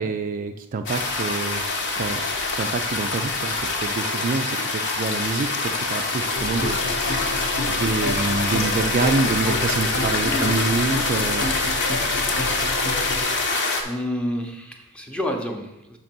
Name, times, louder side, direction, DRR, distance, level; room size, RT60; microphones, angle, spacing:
voice 1, 0.0-1.6 2.0-2.2 2.6-6.8 7.7-11.5, right 4 dB, 40° right, 6 dB, 0.3 m, -26 dB
sound 1, 0.9-13.8, left 3 dB, 55° left, 1.0 m, -25 dB
sound 2, 6.3-13.2, left 1 dB, 75° left, 1.4 m, -30 dB
voice 2, 10.2-10.6 13.8-16.0, left 1 dB, 5° left, 2 dB, 0.7 m, -29 dB
6.0 x 3.8 x 5.9 m, 0.90 s
head